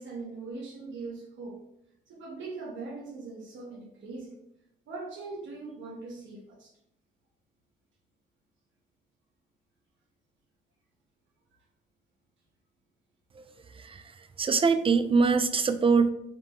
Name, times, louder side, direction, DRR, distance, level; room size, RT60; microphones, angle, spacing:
voice 1, 0.0-1.6 2.1-4.4 4.9-6.7, right 3 dB, 75° right, -2 dB, 1.2 m, -41 dB
voice 2, 14.4-16.1, right 4 dB, 25° right, 10 dB, 0.4 m, -23 dB
3.8 x 3.6 x 3.1 m, 0.77 s
cardioid pair, 90°, 20 cm